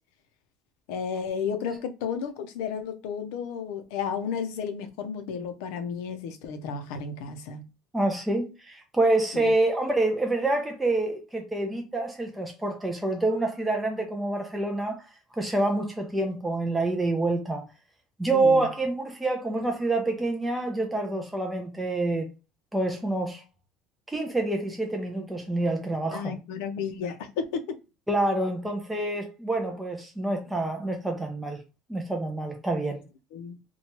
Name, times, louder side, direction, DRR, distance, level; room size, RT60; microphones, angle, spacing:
voice 1, 0.9-7.7 9.3-9.5 18.3-18.7 26.1-27.8 33.3-33.6, left 6 dB, 85° left, 0.5 m, -33 dB
voice 2, 7.9-15.0 15.3-17.7 18.2-22.3 22.7-23.4 24.1-26.3 28.1-31.6 31.9-33.0, right 2 dB, 5° right, 0.4 m, -27 dB
2.9 x 2.2 x 2.8 m
cardioid pair, 160°, 0 cm